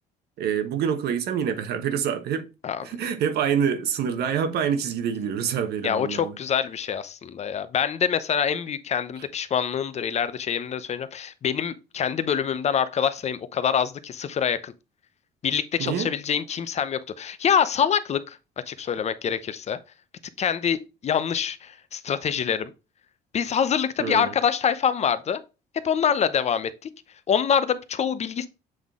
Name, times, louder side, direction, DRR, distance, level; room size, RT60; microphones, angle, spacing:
voice 1, 0.4-2.5 2.8-6.4 15.8-16.1 24.0-24.3, right 8 dB, 70° right, 1.2 m, -26 dB
voice 2, 5.8-14.7 15.4-18.4 18.7-19.8 20.4-22.7 23.3-25.4 25.8-26.7 27.3-28.5, left 7 dB, 40° left, 0.7 m, -25 dB
7.8 x 3.8 x 3.7 m
cardioid pair, 110°, 17 cm